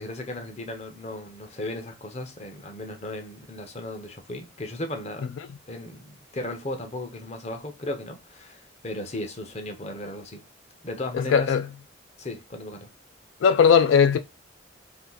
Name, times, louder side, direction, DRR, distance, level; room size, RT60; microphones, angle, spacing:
voice 1, 0.0-5.3 5.7-10.4 10.8-11.5 12.2-12.9, left 1 dB, 35° left, 0.6 m, -36 dB
voice 2, 11.1-11.6 13.4-14.2, left 7 dB, 80° left, 0.3 m, -18 dB
2.8 x 2.5 x 3.8 m
head